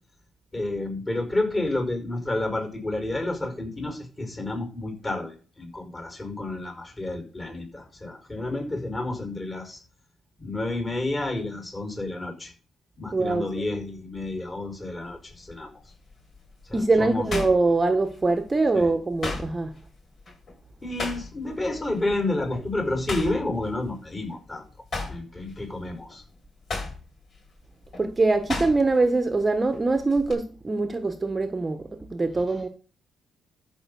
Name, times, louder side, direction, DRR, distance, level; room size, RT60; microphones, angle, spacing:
voice 1, 0.5-9.8 10.4-12.5 13.0-15.7 16.7-17.3 18.7-18.9 20.8-24.7 25.1-26.2, left 2 dB, 25° left, 5.3 m, -30 dB
voice 2, 13.1-13.5 16.7-19.7 28.0-32.7, right 3 dB, 25° right, 1.3 m, -23 dB
sound 1, 15.0-15.4 15.9-18.4 18.7-21.6 21.9-22.2 22.5-24.5 24.8-29.1 29.4-30.3, left 3 dB, 45° left, 6.7 m, -35 dB
13.5 x 5.5 x 7.0 m
cardioid pair, 90°, 0 cm